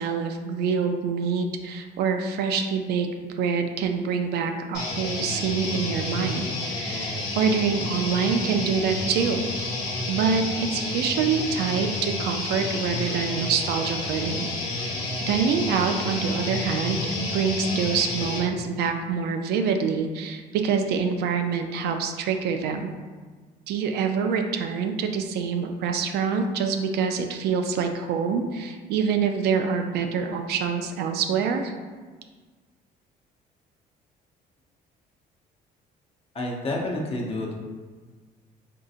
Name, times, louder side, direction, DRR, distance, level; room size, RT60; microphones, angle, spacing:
voice 1, 0.0-9.4 10.1-22.9 23.7-31.7, right 6 dB, 75° right, 5 dB, 0.4 m, -26 dB
sound 1, 4.7-18.4, left 2 dB, 80° left, 1.2 m, -30 dB
voice 2, 36.3-37.5, left 1 dB, 35° left, -1 dB, 0.7 m, -29 dB
3.7 x 2.7 x 2.4 m, 1.4 s
cardioid pair, 110°, 17 cm